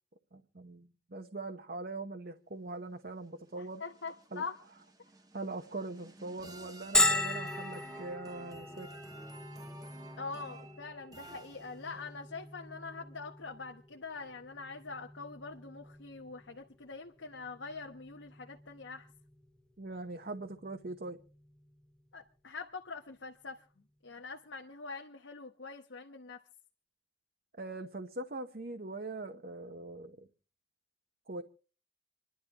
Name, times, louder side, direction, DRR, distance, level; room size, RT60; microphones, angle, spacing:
voice 1, 0.3-3.8 4.3-4.4 5.3-8.9 19.8-21.2 27.6-30.2 31.3-31.4, right 2 dB, 50° right, 0.9 m, -42 dB
sound 1, 3.2-12.1, right 2 dB, 20° right, 1.1 m, -53 dB
voice 2, 3.6-4.6 10.2-19.1 22.1-23.6 24.0-26.4, left 4 dB, 85° left, 1.0 m, -44 dB
Bell, 6.9-22.4, left 1 dB, 5° left, 0.7 m, -38 dB
27.5 x 11.0 x 3.0 m
head